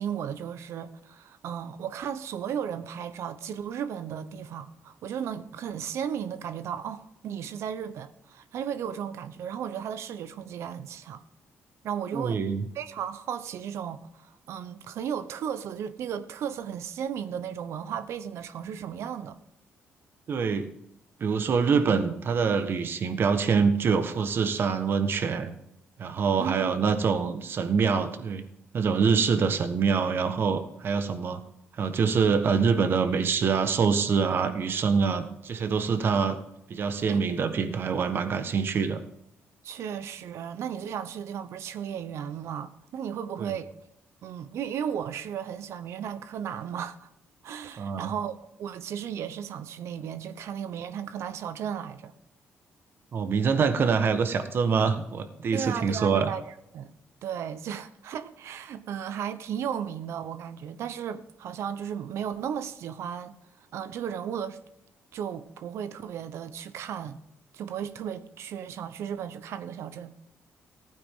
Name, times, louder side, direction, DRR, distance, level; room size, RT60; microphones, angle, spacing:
voice 1, 0.0-11.2 11.8-12.4 12.7-19.4 26.4-26.7 37.1-37.2 39.6-43.7 44.2-47.1 47.4-52.1 55.5-56.9 57.2-63.4 63.7-64.6 65.1-67.2 67.5-70.1, right 8 dB, 75° right, 1.0 m, -35 dB
voice 2, 12.1-12.7 20.3-20.7 21.2-25.5 26.0-28.4 28.7-31.4 31.8-36.4 36.7-39.0 43.4-43.5 47.8-48.1 53.1-56.3, right 5 dB, 50° right, 1.4 m, -25 dB
15.5 x 9.2 x 3.8 m
cardioid pair, 100°, 5 cm